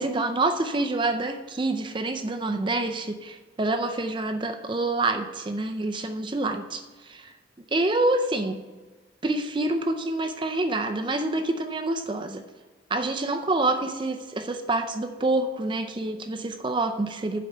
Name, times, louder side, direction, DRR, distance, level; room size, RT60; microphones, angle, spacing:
voice 1, 0.0-7.3 7.7-8.6 9.2-12.4 12.9-17.4, right 2 dB, 25° right, 6 dB, 0.4 m, -27 dB
7.5 x 5.5 x 7.5 m, 1.3 s
head